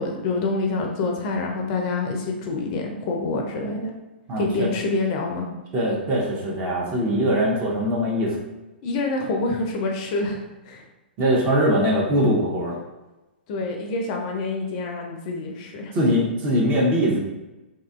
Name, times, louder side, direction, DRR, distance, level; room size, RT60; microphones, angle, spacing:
voice 1, 0.0-3.9 4.4-5.5 8.8-10.9 13.5-16.0, left 3 dB, 40° left, 1 dB, 0.4 m, -27 dB
voice 2, 4.3-4.7 5.7-8.4 11.2-12.8 15.9-17.2, equal, 30° right, -3 dB, 0.7 m, -21 dB
2.7 x 2.4 x 2.3 m, 1.1 s
hypercardioid pair, 120°, 6 cm